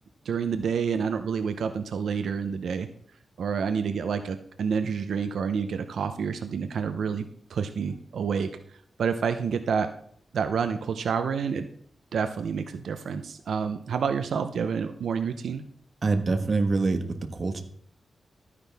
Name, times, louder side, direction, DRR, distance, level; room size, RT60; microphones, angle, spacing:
voice 1, 0.2-2.9 3.4-8.5 9.0-9.9 10.3-11.7 12.1-15.6, right 6 dB, 85° right, 9 dB, 0.7 m, -28 dB
voice 2, 16.0-17.6, right 3 dB, 45° right, 7 dB, 1.4 m, -25 dB
13.0 x 9.8 x 3.5 m, 0.63 s
wide cardioid pair, 110°, 0 cm